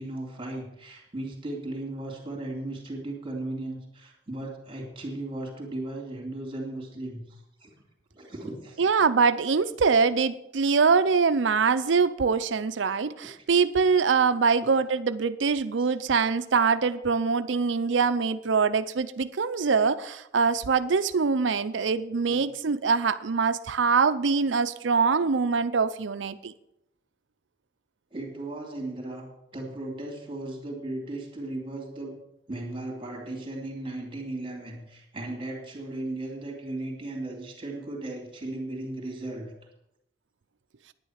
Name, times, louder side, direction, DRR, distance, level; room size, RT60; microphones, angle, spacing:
voice 1, 0.0-7.7 8.1-8.8 15.8-15.9 22.2-22.4 28.1-32.2 32.5-39.5, right 2 dB, 30° right, 2.7 m, -36 dB
voice 2, 8.8-26.5, right 5 dB, 80° right, 0.6 m, -24 dB
9.9 x 9.8 x 6.5 m
head